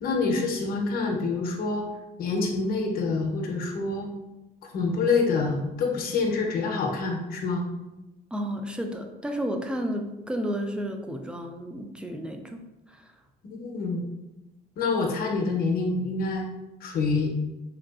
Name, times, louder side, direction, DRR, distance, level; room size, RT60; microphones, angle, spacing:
voice 1, 0.0-1.9 2.2-4.1 4.7-7.7 13.6-14.0 14.8-16.5 16.8-17.3, left 4 dB, 60° left, 1 dB, 0.7 m, -26 dB
voice 2, 8.3-12.6 12.9-13.1, equal, 5° right, 4 dB, 0.3 m, -32 dB
3.7 x 2.3 x 2.3 m, 1.0 s
cardioid pair, 110°, 17 cm